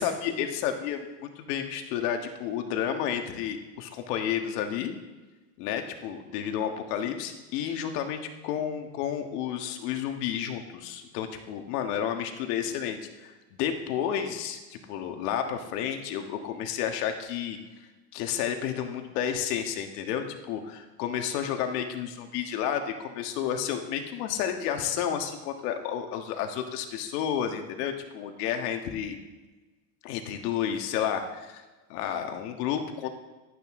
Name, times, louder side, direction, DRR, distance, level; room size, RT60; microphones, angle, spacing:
voice 1, 0.0-4.9 5.6-17.6 18.1-29.2 30.0-31.6 31.9-33.1, left 9 dB, 80° left, 5 dB, 1.7 m, -31 dB
16.0 x 12.0 x 3.7 m, 1.2 s
cardioid pair, 145°, 46 cm